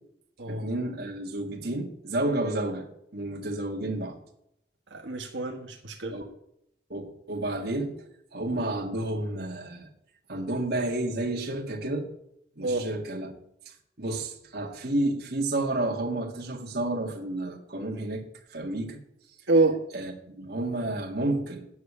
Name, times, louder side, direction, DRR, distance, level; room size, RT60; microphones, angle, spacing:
voice 1, 0.5-2.9 3.1-4.2 6.1-6.3 6.9-8.0 8.3-9.9 10.3-12.1 12.6-13.3 13.7-18.2 18.5-19.0 19.9-21.7, right 1 dB, 60° right, 1.8 m, -31 dB
voice 2, 4.9-6.2 12.6-12.9 19.5-19.8, right 3 dB, 80° right, 1.4 m, -26 dB
9.4 x 6.6 x 8.5 m
head